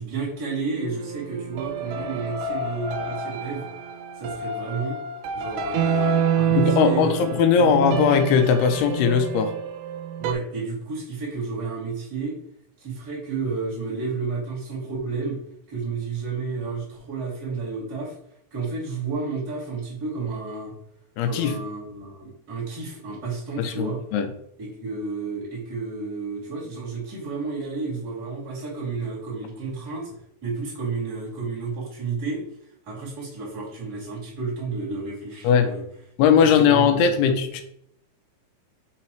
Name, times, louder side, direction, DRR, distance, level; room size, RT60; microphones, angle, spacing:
voice 1, 0.0-3.7 4.1-5.0 5.3-7.7 10.2-12.3 12.8-15.4 15.7-18.2 18.5-20.7 21.2-24.0 24.6-32.5 32.8-35.8 36.6-37.3, right 4 dB, 25° right, -6 dB, 2.5 m, -31 dB
sound 1, 0.8-10.3, right 6 dB, 80° right, 2.8 m, -27 dB
voice 2, 6.6-9.6 21.2-21.6 23.6-24.3 35.4-35.7 36.2-37.6, left 7 dB, 80° left, 7 dB, 2.4 m, -19 dB
6.2 x 3.9 x 4.4 m, 0.72 s
omnidirectional pair, 5.1 m